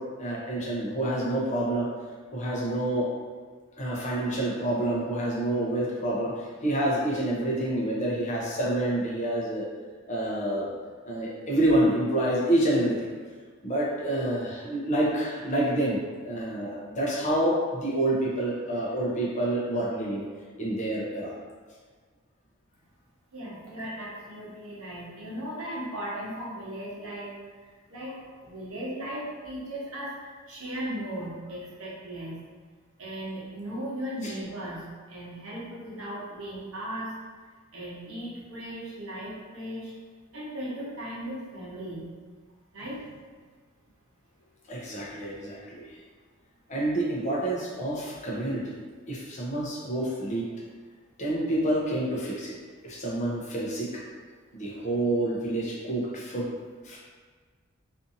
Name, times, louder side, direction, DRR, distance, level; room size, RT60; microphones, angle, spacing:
voice 1, 0.0-1.9 2.3-3.1 3.8-9.7 10.1-10.7 11.0-13.1 13.6-20.2 20.6-21.3 34.2-34.3 44.7-46.0 46.7-48.8 49.1-50.5 51.2-52.5 52.8-54.0 54.5-56.5 56.8-57.0, right 1 dB, 35° left, -4 dB, 0.5 m, -28 dB
voice 2, 23.3-27.3 27.9-28.1 28.4-32.3 33.0-34.8 35.1-37.1 37.7-39.9 40.3-42.0 42.7-43.0, right 1 dB, 75° right, -7 dB, 0.9 m, -37 dB
2.6 x 2.6 x 2.5 m, 1.5 s
head